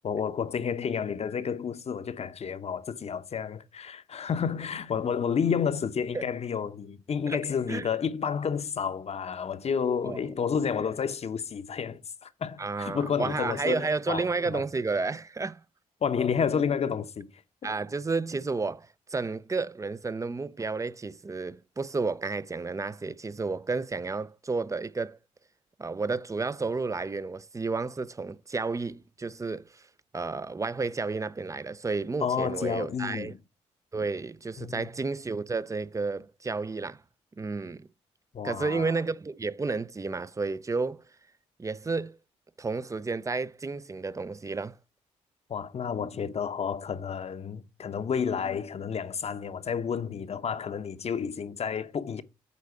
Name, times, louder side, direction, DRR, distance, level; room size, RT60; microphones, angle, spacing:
voice 1, 0.0-14.6 16.0-17.3 32.2-33.4 34.6-34.9 38.3-38.9 45.5-52.2, left 7 dB, 45° left, 0.8 m, -30 dB
voice 2, 12.6-15.6 17.6-25.2 25.8-29.8 30.1-33.3 33.9-37.0 37.4-37.9 38.4-41.0 41.6-42.2 42.6-44.8, right 4 dB, 20° right, 0.5 m, -31 dB
8.4 x 4.1 x 4.8 m
hypercardioid pair, 45°, 15 cm